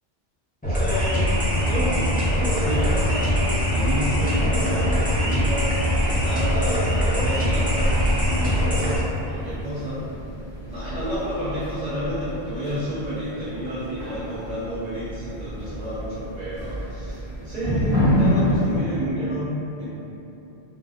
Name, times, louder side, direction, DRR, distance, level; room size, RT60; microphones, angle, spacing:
sound 1, 0.6-9.0, equal, 10° left, 0.5 m, -22 dB
voice 1, 0.7-10.1 10.7-19.9, equal, 45° right, -12 dB, 0.6 m, -30 dB
sound 2, 2.3-18.8, equal, 70° left, 1.6 m, -29 dB
3.5 x 2.6 x 2.3 m, 2.9 s
omnidirectional pair, 1.1 m